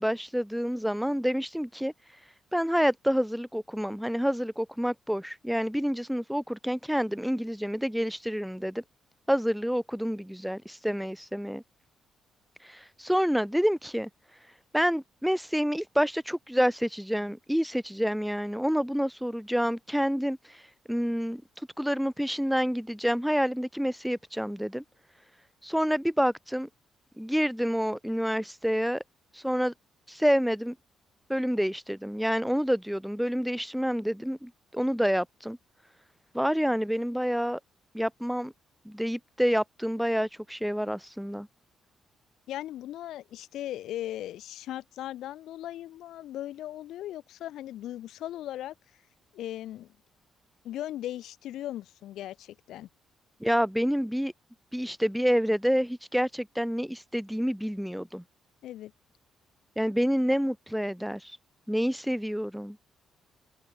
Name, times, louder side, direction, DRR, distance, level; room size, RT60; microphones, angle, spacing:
voice 1, 0.0-1.9 2.5-8.8 9.3-11.6 12.6-14.1 14.7-20.6 20.9-21.4 21.8-24.8 25.6-26.7 27.2-29.0 29.3-29.7 30.1-30.8 31.3-35.6 36.3-37.6 37.9-38.5 38.9-41.5 53.4-54.3 54.7-58.2 59.8-61.4 61.7-62.8, equal, ahead, 0.5 m, -28 dB
voice 2, 42.5-48.7 49.3-49.9 50.6-52.9 58.6-58.9, left 13 dB, 80° left, 1.2 m, -38 dB
cardioid pair, 90°, 0 cm